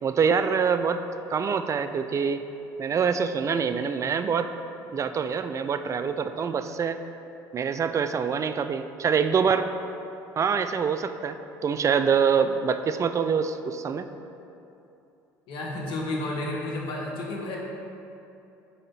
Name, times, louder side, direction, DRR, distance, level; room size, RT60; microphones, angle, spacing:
voice 1, 0.0-1.0 1.3-2.4 2.8-4.5 4.9-7.0 7.5-9.7 10.4-11.4 11.6-14.1, right 6 dB, 35° right, 9 dB, 0.3 m, -25 dB
voice 2, 15.5-17.6, left 2 dB, 65° left, -1 dB, 1.1 m, -31 dB
4.9 x 4.2 x 5.4 m, 2.8 s
hypercardioid pair, 70°, 9 cm